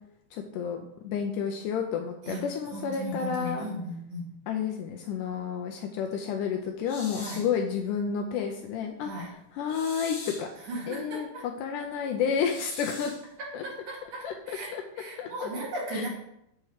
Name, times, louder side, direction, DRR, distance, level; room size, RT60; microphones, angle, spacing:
voice 1, 0.3-0.8 1.0-3.7 4.5-9.1 9.5-10.5 10.9-13.1 13.5-13.6 14.2-14.8 15.2-15.5 15.9-16.1, left 7 dB, 80° left, 3 dB, 1.9 m, -31 dB
voice 2, 2.2-4.3 7.2-7.4 9.0-9.3 10.7-11.5 13.6-16.1, right 1 dB, 65° right, -5 dB, 3.7 m, -37 dB
sound 1, 6.9-7.5 9.7-10.5 12.4-13.2, left 2 dB, 45° left, 2.9 m, -42 dB
7.4 x 4.5 x 4.8 m, 0.79 s
omnidirectional pair, 4.1 m